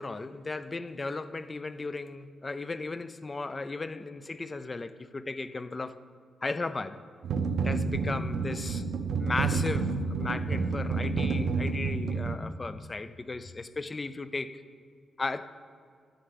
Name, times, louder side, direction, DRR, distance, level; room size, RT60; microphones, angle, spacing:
voice 1, 0.0-6.0 6.4-7.0 7.6-8.9 9.2-14.6 15.2-15.5, left 3 dB, 20° left, 13 dB, 0.4 m, -36 dB
sound 1, 7.2-12.3, right 4 dB, 70° right, 0.7 m, -29 dB
11.5 x 6.6 x 8.1 m, 2.1 s
wide cardioid pair, 165°, 0 cm